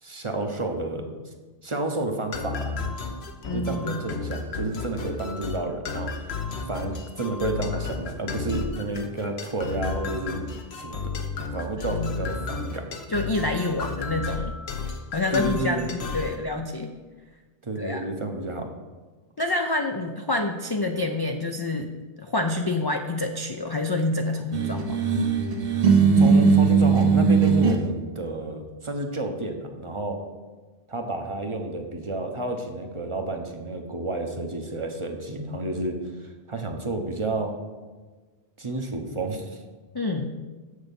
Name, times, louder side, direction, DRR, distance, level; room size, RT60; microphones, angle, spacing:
voice 1, 0.0-1.1 1.6-2.8 3.5-6.3 6.7-11.1 11.5-12.9 15.3-15.9 17.6-18.7 26.2-30.2 30.9-37.6 38.6-39.6, right 2 dB, 35° right, 4 dB, 0.7 m, -30 dB
sound 1, 2.3-16.4, left 4 dB, 90° left, 1.1 m, -33 dB
voice 2, 3.5-4.0 11.8-12.1 13.1-14.5 15.1-16.9 17.8-18.1 19.4-25.0 39.9-40.3, left 2 dB, 40° left, 4 dB, 0.3 m, -27 dB
sound 2, 24.5-27.8, right 5 dB, 65° right, 1.0 m, -19 dB
7.0 x 6.5 x 5.3 m, 1.3 s
omnidirectional pair, 1.0 m